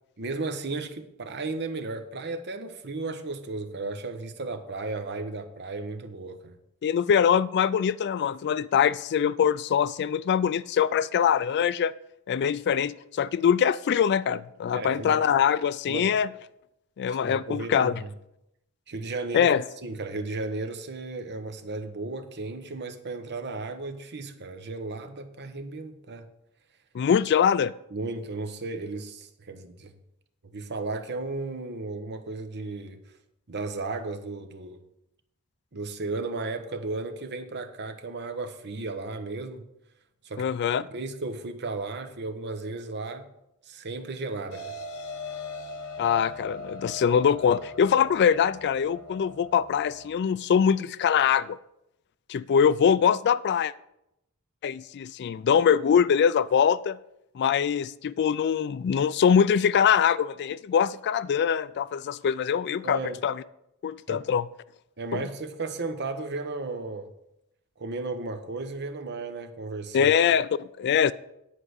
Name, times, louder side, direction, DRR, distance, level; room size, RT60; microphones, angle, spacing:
voice 1, 0.2-6.6 14.7-15.2 15.9-16.2 17.1-18.1 18.9-19.5 19.8-26.3 27.9-29.9 30.5-33.0 33.5-34.8 35.7-39.6 40.2-43.3 43.7-44.7 62.8-63.2 64.1-64.2 65.0-67.1 67.8-70.1, right 3 dB, 50° right, 1.0 m, -34 dB
voice 2, 6.8-11.9 12.3-16.3 17.0-18.0 19.3-19.6 26.9-27.7 40.4-40.8 46.0-51.6 52.3-53.7 54.6-57.0 57.4-63.4 63.8-64.5 65.1-65.2 69.9-71.1, left 7 dB, 50° left, 0.3 m, -23 dB
sound 1, 44.5-50.1, left 2 dB, 75° left, 1.0 m, -40 dB
10.0 x 4.8 x 8.1 m
head